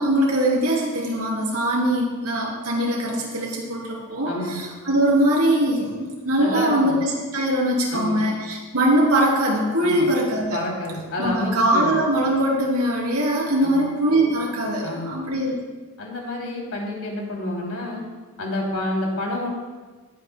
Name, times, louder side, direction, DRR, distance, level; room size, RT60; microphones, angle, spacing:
voice 1, 0.0-10.6 11.2-15.5, right 1 dB, 85° right, -2 dB, 3.0 m, -22 dB
voice 2, 4.3-4.6 6.4-7.0 7.9-8.2 9.8-10.1 10.5-11.9 13.6-13.8 14.8-15.1 16.0-18.0 18.4-19.5, left 1 dB, 75° left, -1 dB, 2.9 m, -28 dB
19.5 x 9.1 x 2.2 m, 1.3 s
head